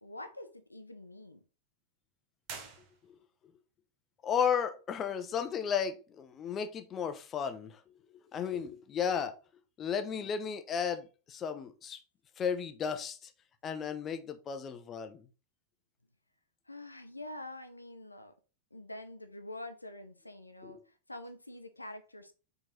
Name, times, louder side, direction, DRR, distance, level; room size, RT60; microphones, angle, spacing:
voice 1, 0.0-1.4 16.7-18.3 18.7-22.3, left 1 dB, 85° left, 0.5 m, -46 dB
sound 1, 2.4-3.5, right 6 dB, 45° right, 1.1 m, -47 dB
voice 2, 4.2-7.8 8.3-9.4 9.8-12.0 12.4-13.3 13.6-15.3 20.6-20.8, left 7 dB, 25° left, 0.6 m, -34 dB
4.5 x 3.9 x 3.0 m
figure-of-eight pair, 90°, 0 cm